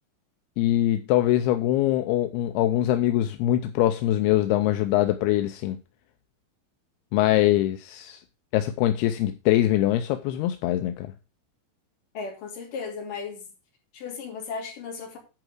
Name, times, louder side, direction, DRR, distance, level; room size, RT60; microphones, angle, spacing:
voice 1, 0.6-5.8 7.1-8.2 8.5-11.1, left 13 dB, 85° left, 2.6 m, -23 dB
voice 2, 12.1-13.5 13.9-15.2, left 5 dB, 55° left, 4.2 m, -35 dB
10.5 x 4.8 x 6.3 m
omnidirectional pair, 4.6 m